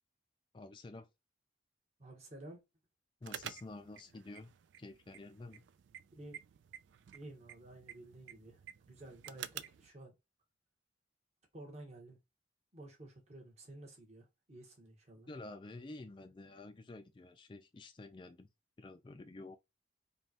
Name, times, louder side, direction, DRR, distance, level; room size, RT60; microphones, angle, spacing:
voice 1, 0.5-1.1 3.2-4.5 4.8-5.6 15.3-18.5 18.8-19.6, left 2 dB, 25° left, 0.3 m, -50 dB
voice 2, 2.0-2.6 6.1-6.4 7.1-10.1 11.5-12.2 12.7-15.3, right 1 dB, 35° right, 1.2 m, -52 dB
sound 1, 3.2-9.9, right 10 dB, 80° right, 0.3 m, -51 dB
5.2 x 2.3 x 2.9 m
head